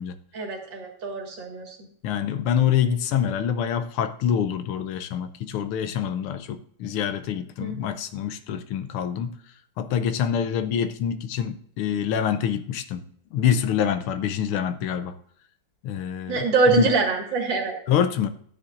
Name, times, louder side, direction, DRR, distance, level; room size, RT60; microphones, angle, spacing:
voice 1, 0.3-1.8 7.6-7.8 16.3-17.8, right 4 dB, 60° right, 0 dB, 2.6 m, -24 dB
voice 2, 2.0-9.3 9.8-13.1 13.3-15.2 15.8-16.9 17.9-18.3, left 8 dB, 80° left, 10 dB, 1.6 m, -26 dB
14.0 x 9.9 x 2.5 m, 0.63 s
omnidirectional pair, 2.4 m